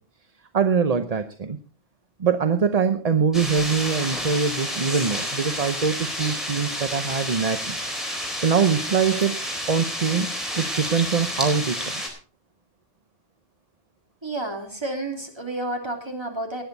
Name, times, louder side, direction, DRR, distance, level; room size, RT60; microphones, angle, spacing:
voice 1, 0.5-1.6 2.2-7.8 8.4-9.4 9.7-12.0, right 6 dB, 40° right, 9 dB, 0.7 m, -23 dB
sound 1, 3.3-12.1, equal, ahead, 4.3 m, -30 dB
voice 2, 14.2-16.6, right 2 dB, 20° right, 2 dB, 2.9 m, -30 dB
18.0 x 10.5 x 4.0 m, 0.37 s
omnidirectional pair, 1.2 m